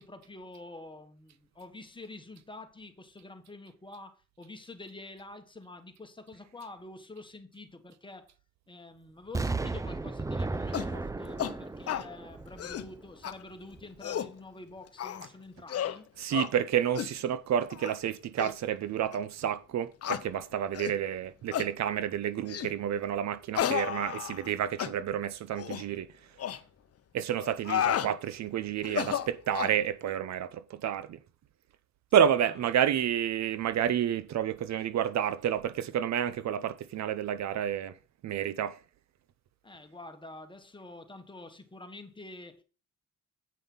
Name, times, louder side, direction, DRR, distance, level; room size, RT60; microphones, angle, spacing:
voice 1, 0.0-8.3 8.7-16.1 39.6-42.6, left 2 dB, 15° left, 1.5 m, -47 dB
Explosion, 9.3-13.3 13.7-13.8, right 3 dB, 10° right, 0.5 m, -35 dB
sound 1, 10.7-10.9 11.4-11.5 11.9-12.1 12.5-12.9 13.2-13.3 13.8-14.3 15.0-15.3 15.7-16.0 16.3-16.5 17.0-17.1 17.7-17.9 18.4-18.5 19.1-19.2 20.0-20.2 20.7-21.0 21.5-21.7 22.5-22.7 23.5-24.5 24.8-24.9 25.6-25.8 26.4-26.6 27.4-28.1 28.8-29.8, left 10 dB, 50° left, 0.8 m, -32 dB
voice 2, 16.2-26.1 27.1-31.2 32.1-37.9 38.2-38.8, right 9 dB, 65° right, 0.7 m, -30 dB
8.5 x 5.4 x 5.6 m
cardioid pair, 90°, 30 cm